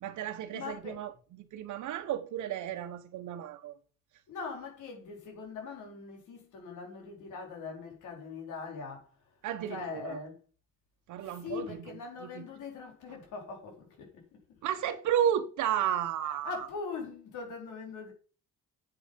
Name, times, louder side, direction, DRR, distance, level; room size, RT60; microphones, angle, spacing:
voice 1, 0.0-3.8 9.4-10.2 11.1-11.9 12.2-12.5 14.6-16.7, right 10 dB, 75° right, 1.0 m, -33 dB
voice 2, 0.5-1.0 4.3-9.4 9.7-10.3 11.2-14.4 16.2-18.1, left 5 dB, 85° left, 4.1 m, -42 dB
7.9 x 7.9 x 5.2 m
cardioid pair, 90°, 30 cm